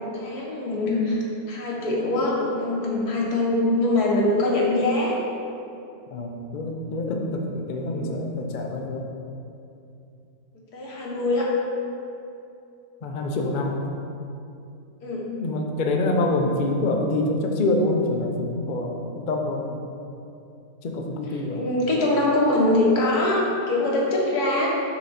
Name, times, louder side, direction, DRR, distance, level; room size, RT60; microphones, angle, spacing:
voice 1, 0.0-5.2 7.8-8.2 10.5-11.5 15.0-15.3 21.5-24.7, left 2 dB, 90° left, -3 dB, 1.7 m, -23 dB
voice 2, 6.1-9.1 13.0-13.8 15.4-19.8 20.8-21.7, left 2 dB, 55° left, 2 dB, 0.5 m, -26 dB
5.8 x 3.9 x 5.8 m, 2.7 s
omnidirectional pair, 1.6 m